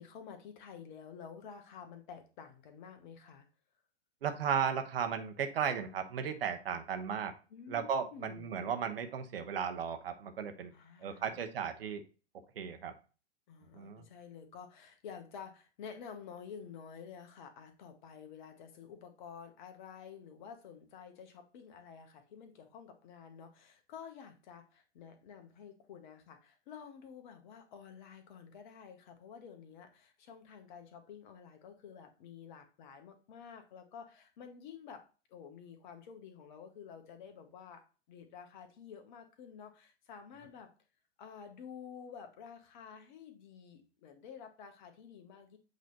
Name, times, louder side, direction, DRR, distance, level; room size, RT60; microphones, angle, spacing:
voice 1, 0.0-3.5 7.5-8.8 10.7-11.4 13.5-35.0 35.3-40.7 41.2-45.6, left 7 dB, 40° left, 7 dB, 1.2 m, -51 dB
voice 2, 4.2-7.3 7.7-10.7 11.0-12.0 12.6-12.9 13.7-14.0, right 7 dB, 55° right, 7 dB, 1.1 m, -35 dB
8.0 x 3.2 x 4.1 m, 0.34 s
figure-of-eight pair, 105°, 35 cm